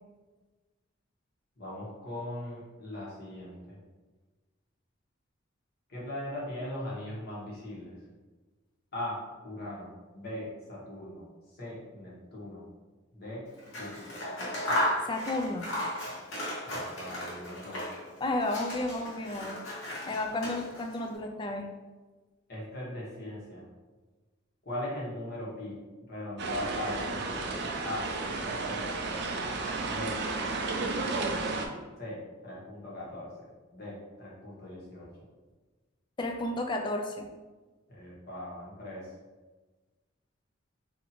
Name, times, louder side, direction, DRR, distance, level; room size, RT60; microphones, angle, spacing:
voice 1, 1.6-3.8 5.9-7.9 8.9-9.2 9.4-11.2 11.6-12.6 13.1-13.4 13.8-14.2 16.6-17.8 22.5-23.6 24.6-25.7 26.1-28.0 28.4-29.3 29.9-30.2 30.4-31.3 32.0-32.2 32.4-33.3 33.7-35.1 37.9-39.0, left 1 dB, 50° left, -6 dB, 1.2 m, -40 dB
Scissors, 13.6-18.1 18.4-21.0, left 1 dB, 75° left, 1.0 m, -35 dB
voice 2, 15.0-15.7 18.2-19.6 20.1-21.7 36.2-37.3, left 2 dB, 25° left, 3 dB, 0.3 m, -32 dB
sound 1, 26.4-31.7, right 3 dB, 55° right, 0.4 m, -32 dB
2.8 x 2.6 x 4.1 m, 1.3 s
head